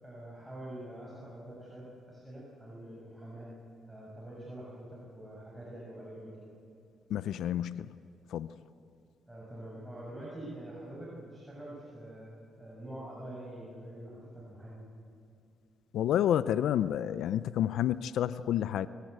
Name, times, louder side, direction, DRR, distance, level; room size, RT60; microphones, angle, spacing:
voice 1, 0.0-3.5 3.9-6.5 9.3-12.3 12.6-14.8, right 1 dB, 5° right, -5 dB, 6.4 m, -45 dB
voice 2, 7.1-7.9 8.3-8.5 15.9-18.9, left 11 dB, 75° left, 15 dB, 0.5 m, -29 dB
25.5 x 17.0 x 8.0 m, 2.5 s
cardioid pair, 90°, 0 cm